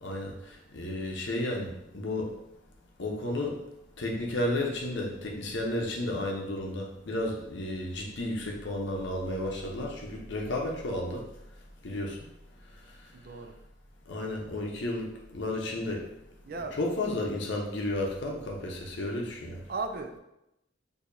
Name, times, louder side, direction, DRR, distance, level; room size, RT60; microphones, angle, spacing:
voice 1, 0.0-2.3 3.0-3.6 4.0-11.2 11.8-12.2 14.1-16.1 16.8-19.6, left 1 dB, 65° left, 0 dB, 0.7 m, -32 dB
voice 2, 13.1-13.5 16.4-16.8 19.7-20.2, right 3 dB, 50° right, 6 dB, 0.3 m, -36 dB
4.6 x 2.7 x 2.6 m, 0.87 s
head